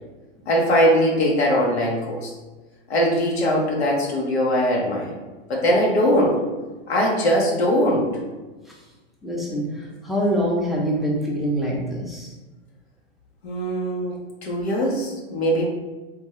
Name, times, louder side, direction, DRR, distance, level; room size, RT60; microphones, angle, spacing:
voice 1, 0.5-2.3 2.9-5.1 5.5-6.4 6.9-8.1 13.4-15.7, equal, 85° left, -3 dB, 0.9 m, -21 dB
voice 2, 9.2-12.3, equal, ahead, -4 dB, 0.6 m, -25 dB
3.5 x 2.2 x 2.9 m, 1.2 s
hypercardioid pair, 110°, 31 cm